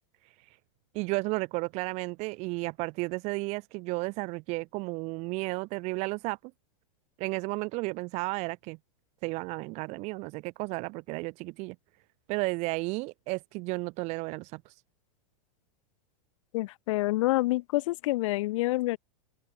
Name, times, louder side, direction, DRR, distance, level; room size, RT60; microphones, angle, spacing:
voice 1, 0.9-6.4 7.2-8.8 9.2-11.7 12.3-14.7, right 25 dB, 35° right, 1.3 m, -33 dB
voice 2, 16.5-19.0, left 19 dB, 50° left, 0.8 m, -27 dB
open air
supercardioid pair, 160°, 21 cm